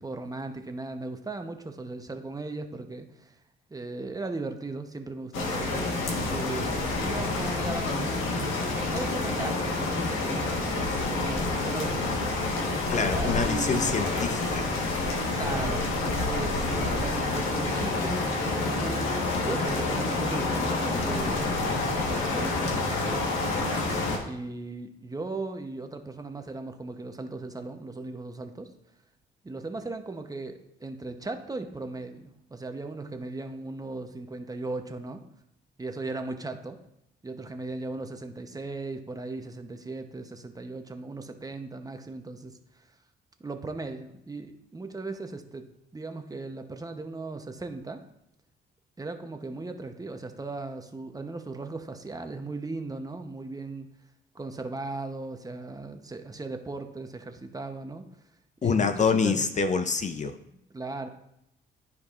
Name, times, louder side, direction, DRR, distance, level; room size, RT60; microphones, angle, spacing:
voice 1, 0.0-3.4 3.7-12.4 13.1-14.0 15.3-23.3 24.2-28.7 29.4-35.2 35.8-36.8 37.2-42.9 43.4-45.6 45.9-48.0 49.0-53.9 54.3-58.0 58.6-59.5 60.5-61.1, right 3 dB, 20° right, 6 dB, 0.8 m, -37 dB
sound 1, 5.3-24.2, left 2 dB, 85° left, 1.3 m, -28 dB
voice 2, 12.9-14.7 58.6-60.3, left 5 dB, 35° left, 9 dB, 0.5 m, -26 dB
13.0 x 4.7 x 2.4 m, 0.82 s
cardioid pair, 90°, 20 cm